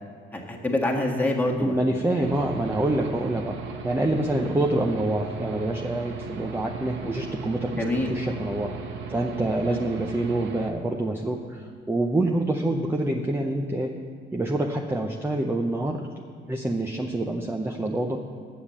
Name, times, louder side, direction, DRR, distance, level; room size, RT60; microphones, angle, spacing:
voice 1, 0.3-2.4 4.3-4.5 7.7-8.1 9.6-9.8, left 1 dB, 10° left, -1 dB, 1.6 m, -27 dB
voice 2, 1.6-3.6 3.8-7.8 8.1-8.8 9.1-14.0 14.3-18.2, right 1 dB, 10° right, 2 dB, 0.7 m, -26 dB
Aircraft / Engine, 2.2-10.7, right 5 dB, 75° right, 1.0 m, -37 dB
7.2 x 7.2 x 8.3 m, 2.3 s
cardioid pair, 90°, 20 cm